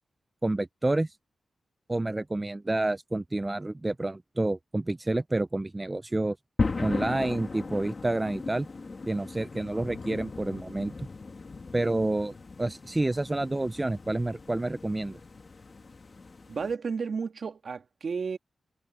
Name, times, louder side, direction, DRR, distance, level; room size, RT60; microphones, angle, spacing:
voice 1, 0.4-1.1 1.9-6.4 6.8-8.7 9.1-11.1 11.7-15.2, right 2 dB, 20° right, 0.4 m, -29 dB
sound 1, 6.6-16.8, left 3 dB, 40° left, 2.2 m, -37 dB
voice 2, 16.5-18.4, right 5 dB, 60° right, 1.7 m, -32 dB
wide cardioid pair, 95°, 0 cm